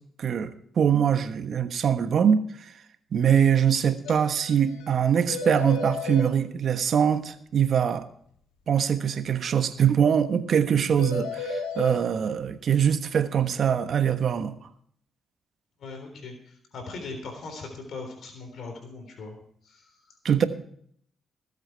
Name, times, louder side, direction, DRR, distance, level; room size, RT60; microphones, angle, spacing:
voice 1, 0.2-2.7 3.1-8.1 8.7-14.5 20.2-20.5, right 8 dB, 60° right, 10 dB, 1.3 m, -23 dB
sound 1, 4.0-4.2 4.4-4.5 4.8-4.9 5.3-6.3 11.0-12.0, left 3 dB, 80° left, 1.9 m, -32 dB
voice 2, 15.8-19.4 19.6-20.1, left 3 dB, 65° left, 4 dB, 3.6 m, -40 dB
20.0 x 8.2 x 4.6 m, 0.63 s
hypercardioid pair, 50°, 0 cm